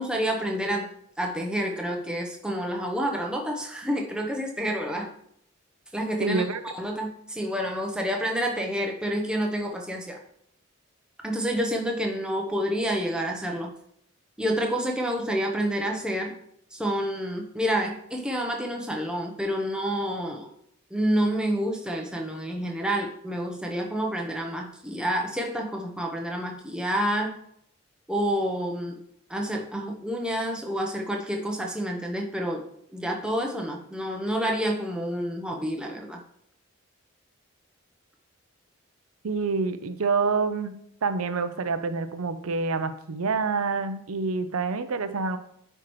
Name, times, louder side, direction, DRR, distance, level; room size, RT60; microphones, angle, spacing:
voice 1, 0.0-5.1 5.9-6.4 6.7-10.2 11.2-13.7 14.4-16.3 16.7-20.5 20.9-27.3 28.1-29.0 29.3-32.6 32.9-36.2, equal, 5° right, 0 dB, 0.8 m, -28 dB
voice 2, 6.2-6.6 39.2-40.7 41.0-45.4, right 4 dB, 85° right, 10 dB, 0.6 m, -27 dB
9.7 x 4.5 x 3.1 m, 0.72 s
head